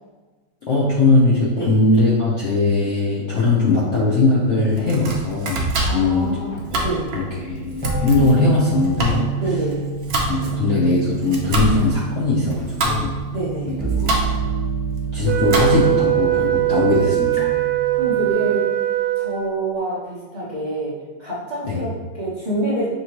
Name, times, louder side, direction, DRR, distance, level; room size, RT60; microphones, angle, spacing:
voice 1, 0.7-6.4 7.1-9.2 10.3-13.2 13.7-13.8 15.1-17.5 21.6-21.8, left 3 dB, 60° left, -6 dB, 0.8 m, -19 dB
Domestic sounds home sounds, 4.7-16.1, right 2 dB, 70° right, 0.6 m, -27 dB
voice 2, 5.9-7.1 9.4-9.8 13.3-13.8 17.9-18.7 19.2-20.9 21.2-22.9, right 1 dB, 35° right, -10 dB, 0.8 m, -26 dB
sound 1, 7.8-18.3, right 5 dB, 10° left, 0.5 m, -28 dB
Wind instrument woodwind instrument, 15.2-19.6, right 17 dB, 85° right, 1.4 m, -21 dB
5.9 x 3.0 x 2.9 m, 1.3 s
omnidirectional pair, 2.0 m